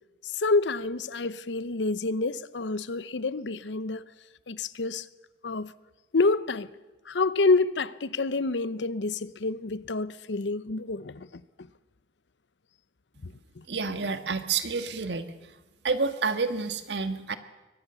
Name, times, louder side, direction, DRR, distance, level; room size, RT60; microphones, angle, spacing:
voice 1, 0.2-4.0 4.5-5.1 5.4-5.7 6.1-6.7 7.1-11.4 13.2-13.6, left 3 dB, 90° left, 0.8 m, -28 dB
voice 2, 13.7-15.2 15.8-17.4, right 4 dB, 80° right, 1.7 m, -29 dB
23.5 x 19.0 x 6.9 m
head